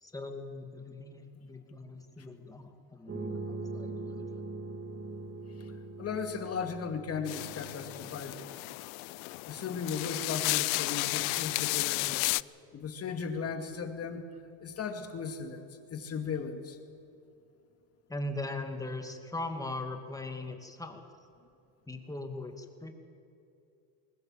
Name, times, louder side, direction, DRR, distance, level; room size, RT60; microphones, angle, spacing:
voice 1, 0.0-4.4 18.1-21.0 21.9-22.9, left 2 dB, 10° left, 5 dB, 2.4 m, -40 dB
sound 1, 3.1-8.3, right 3 dB, 30° right, 2.5 m, -41 dB
voice 2, 6.0-8.6 9.5-12.3 12.7-14.3 14.6-15.6 15.9-16.8, left 6 dB, 35° left, 6 dB, 2.4 m, -36 dB
sound 2, 7.3-12.4, left 26 dB, 85° left, 0.5 m, -33 dB
21.5 x 19.5 x 7.5 m, 2.7 s
supercardioid pair, 110°, 40 cm